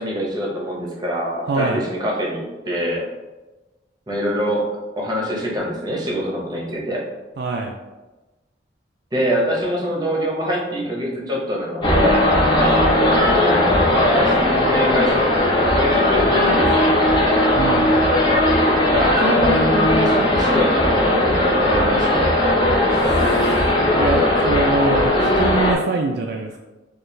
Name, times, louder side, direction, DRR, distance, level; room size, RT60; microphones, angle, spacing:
voice 1, 0.0-3.1 4.1-4.6 5.0-7.0 9.1-12.2 12.5-12.9 13.3-17.3 18.8-22.4, equal, 20° right, -3 dB, 0.8 m, -24 dB
voice 2, 1.5-1.8 7.4-7.7 17.5-17.9 22.9-23.6 23.9-26.6, right 3 dB, 60° right, 2 dB, 0.3 m, -24 dB
sound 1, 11.8-25.7, left 1 dB, 25° left, 0.7 m, -17 dB
4.3 x 2.4 x 3.1 m, 1.1 s
head